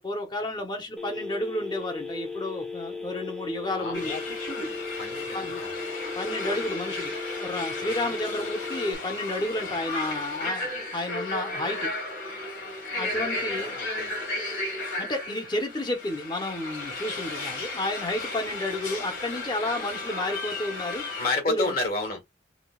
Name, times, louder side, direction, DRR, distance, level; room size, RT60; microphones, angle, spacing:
voice 1, 0.0-4.1 5.3-5.5 6.1-11.9 12.9-13.8 15.0-21.2 21.5-21.8, left 1 dB, 25° left, 0.8 m, -31 dB
Telephone, 1.0-8.9, left 4 dB, 5° left, 0.4 m, -36 dB
voice 2, 3.7-4.2 5.0-5.7 7.8-8.2 13.1-14.1 21.2-22.2, left 3 dB, 50° left, 1.3 m, -31 dB
sound 1, 3.9-21.3, left 2 dB, 90° left, 1.8 m, -34 dB
5.0 x 2.2 x 2.3 m
head